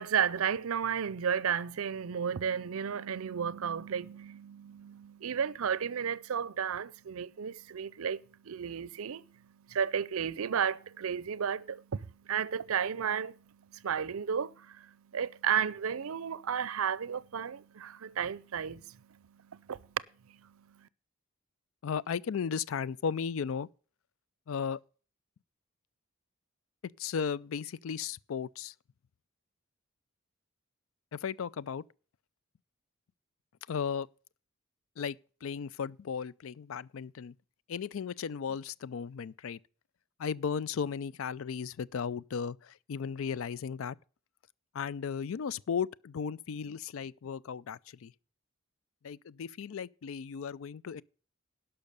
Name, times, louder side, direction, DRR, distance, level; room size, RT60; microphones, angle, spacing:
voice 1, 0.0-8.2 8.5-9.2 9.7-11.8 12.3-13.3 13.8-14.7 15.1-18.8 19.5-19.8, right 7 dB, 80° right, 0.5 m, -33 dB
voice 2, 21.8-23.7 24.5-24.8 27.0-28.7 31.1-31.8 33.7-34.1 35.0-37.3 37.7-39.6 40.2-44.0 44.7-48.1 49.0-51.0, left 6 dB, 70° left, 0.4 m, -35 dB
12.0 x 5.8 x 6.7 m
head